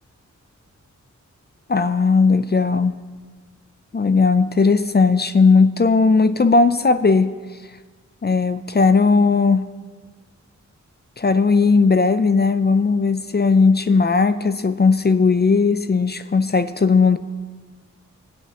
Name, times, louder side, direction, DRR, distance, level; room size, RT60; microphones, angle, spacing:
voice 1, 1.7-2.9 3.9-7.3 8.2-9.6 11.2-17.2, left 4 dB, 35° left, 11 dB, 0.4 m, -17 dB
22.0 x 8.2 x 2.9 m, 1.4 s
wide cardioid pair, 95°, 30 cm